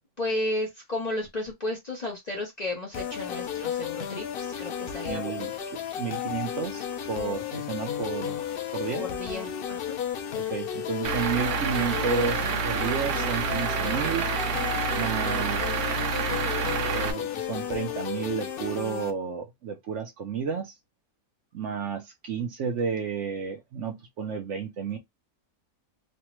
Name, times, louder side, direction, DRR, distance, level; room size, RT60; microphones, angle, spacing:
voice 1, 0.2-5.5 9.0-10.0, left 1 dB, 40° left, 0.7 m, -33 dB
sound 1, 2.9-19.1, left 9 dB, 75° left, 0.5 m, -33 dB
voice 2, 5.0-5.5 6.0-8.4 8.7-9.0 10.3-14.2 15.0-16.2 16.5-20.7 21.5-25.0, right 6 dB, 65° right, 0.8 m, -32 dB
Truck / Idling, 11.0-17.1, right 5 dB, 85° right, 1.1 m, -28 dB
3.2 x 2.1 x 3.0 m
omnidirectional pair, 1.6 m